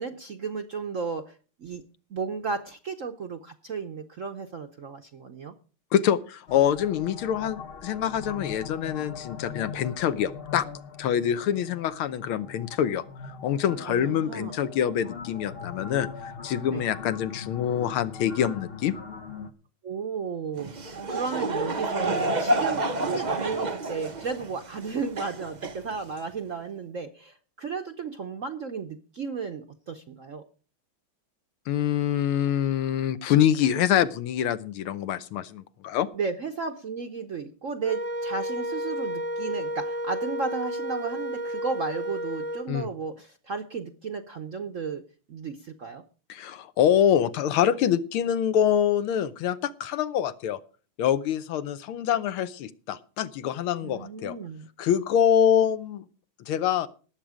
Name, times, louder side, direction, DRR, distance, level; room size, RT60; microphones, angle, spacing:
voice 1, 0.0-1.3 1.6-1.8 2.1-5.5 13.8-14.6 16.7-16.8 19.8-30.4 36.1-45.0 45.3-46.0 53.8-54.7, right 5 dB, 60° right, 7 dB, 0.8 m, -34 dB
voice 2, 5.9-10.6 11.0-18.9 31.7-36.1 42.7-42.9 46.3-50.6 51.0-54.3 54.8-56.0 56.5-56.9, left 9 dB, 75° left, 13 dB, 1.7 m, -25 dB
sound 1, 6.5-19.5, left 6 dB, 50° left, 0.7 m, -41 dB
Laughter / Crowd, 20.6-26.3, right 2 dB, 85° right, 0.4 m, -29 dB
Wind instrument woodwind instrument, 37.8-42.7, equal, 10° left, 0.5 m, -32 dB
19.0 x 7.5 x 5.0 m, 0.37 s
omnidirectional pair, 2.4 m